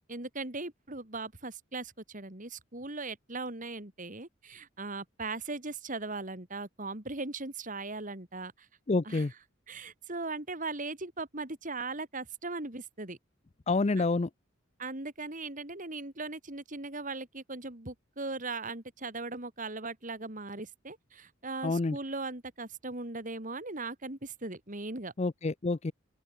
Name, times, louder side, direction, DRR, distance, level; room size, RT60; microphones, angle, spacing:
voice 1, 0.1-8.7 9.0-9.3 9.7-13.2 14.0-14.1 14.8-25.1, right 3 dB, 40° right, 2.9 m, -39 dB
voice 2, 8.9-9.3 13.7-14.3 21.6-22.0 25.2-25.9, left 3 dB, 30° left, 0.5 m, -28 dB
open air
head